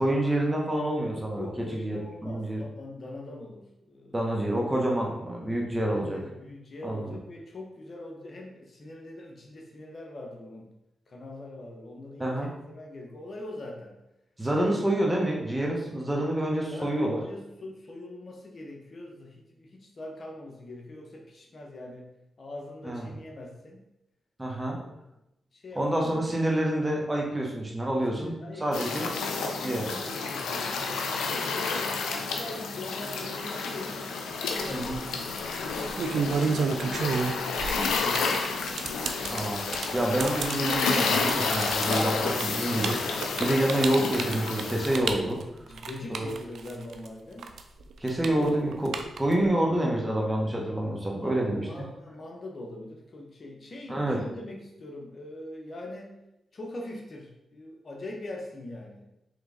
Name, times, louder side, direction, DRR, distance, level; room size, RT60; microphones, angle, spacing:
voice 1, 0.0-1.5 1.7-2.6 4.1-6.2 6.8-7.2 12.2-12.5 14.4-17.2 22.8-23.1 24.4-24.8 25.8-29.1 29.6-29.8 34.7-35.0 39.3-43.0 43.4-45.4 46.1-46.3 48.0-51.7 53.9-54.2, right 1 dB, 20° right, -2 dB, 1.2 m, -27 dB
voice 2, 1.3-4.9 5.9-10.7 11.1-14.0 14.5-14.8 16.7-22.1 22.4-23.8 24.7-24.9 25.5-26.5 28.1-31.9 32.3-34.0 34.5-35.0 35.5-37.0 37.3-38.6 45.6-47.5 48.2-48.5 51.1-56.2 56.5-59.0, left 2 dB, 55° left, 0 dB, 0.9 m, -42 dB
sound 1, 28.7-45.0, left 4 dB, 90° left, 0.5 m, -30 dB
sound 2, 34.6-35.0 35.7-47.1 47.4-49.5, right 5 dB, 75° right, 0.4 m, -31 dB
3.8 x 3.4 x 3.5 m, 0.89 s
supercardioid pair, 50°, 0 cm